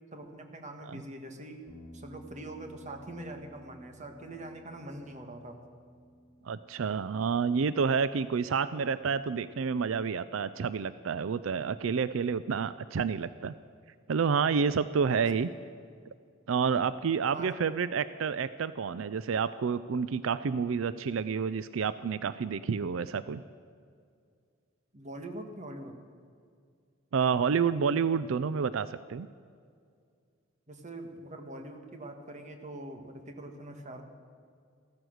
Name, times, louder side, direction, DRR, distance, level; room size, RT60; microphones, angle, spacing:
voice 1, 0.1-1.6 1.9-5.6 15.0-15.3 17.3-17.5 24.9-25.9 30.7-34.0, right 1 dB, 40° right, 5 dB, 1.6 m, -43 dB
sound 1, 1.7-10.0, equal, 20° left, 2.2 m, -55 dB
voice 2, 6.5-13.5 14.1-15.5 16.5-23.4 27.1-29.3, right 6 dB, 85° right, 15 dB, 0.4 m, -29 dB
15.0 x 14.0 x 6.4 m, 2.2 s
head